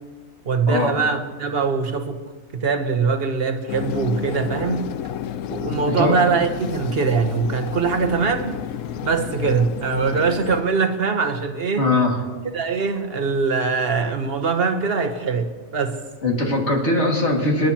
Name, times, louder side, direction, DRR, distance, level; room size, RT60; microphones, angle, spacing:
voice 1, 0.4-2.2 2.5-4.9 5.5-8.6 9.0-11.9 12.5-16.0, right 5 dB, 45° right, 1.1 m, -22 dB
sound 1, 3.7-10.6, left 10 dB, 70° left, 0.9 m, -31 dB
voice 2, 5.9-6.2 11.8-12.2 16.2-17.7, left 2 dB, 50° left, 2.4 m, -20 dB
28.0 x 10.5 x 2.9 m
omnidirectional pair, 1.5 m